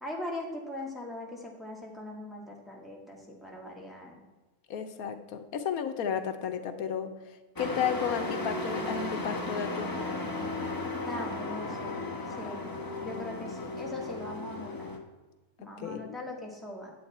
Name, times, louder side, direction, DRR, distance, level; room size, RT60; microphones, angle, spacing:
voice 1, 0.0-4.2 11.0-12.0 12.4-12.7 13.0-14.9 15.6-16.9, left 1 dB, ahead, -2 dB, 1.7 m, -40 dB
voice 2, 4.7-10.0 15.8-16.2, left 8 dB, 80° left, 8 dB, 1.3 m, -33 dB
Truck, 7.6-15.0, left 2 dB, 15° left, 0.9 m, -35 dB
10.5 x 8.0 x 4.2 m, 1.2 s
omnidirectional pair, 1.5 m